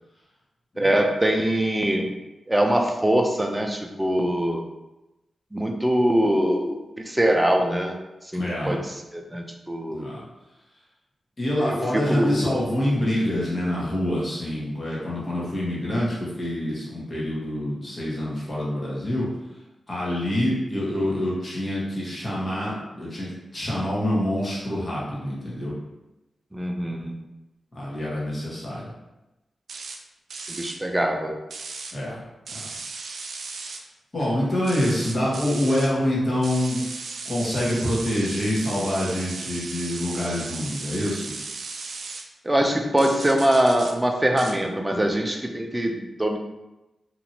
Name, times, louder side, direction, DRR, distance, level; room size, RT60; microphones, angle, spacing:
voice 1, 0.8-2.1 2.5-4.6 5.5-6.8 7.0-8.0 8.3-8.8 9.1-10.0 11.6-11.8 12.1-12.5 26.5-27.2 30.5-31.4 42.4-46.4, right 1 dB, 15° right, 3 dB, 0.5 m, -23 dB
voice 2, 8.3-8.8 9.9-10.2 11.4-19.3 19.9-25.7 27.7-28.9 31.9-32.2 32.5-32.7 34.1-36.8 37.2-41.3, left 1 dB, 45° left, -6 dB, 1.3 m, -26 dB
sound 1, 29.7-30.0 30.3-30.8 31.5-31.9 32.5-33.8 34.6-35.9 36.4-42.2 43.0-43.9 44.4-44.5, right 4 dB, 70° right, 0.3 m, -36 dB
2.9 x 2.6 x 2.8 m, 0.99 s
cardioid pair, 45°, 0 cm